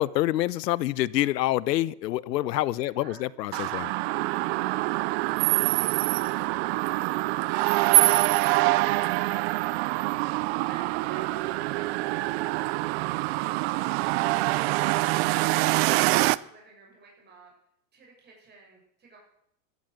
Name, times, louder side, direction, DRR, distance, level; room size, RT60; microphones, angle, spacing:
voice 1, 0.0-3.9, left 15 dB, 85° left, 0.9 m, -26 dB
voice 2, 2.8-3.3 3.8-4.2 4.5-9.7 10.7-12.7 16.3-17.5 17.9-19.2, right 4 dB, 20° right, 6.9 m, -53 dB
sound 1, 3.5-16.4, right 21 dB, 45° right, 0.5 m, -25 dB
13.5 x 12.5 x 7.9 m
supercardioid pair, 140°, 48 cm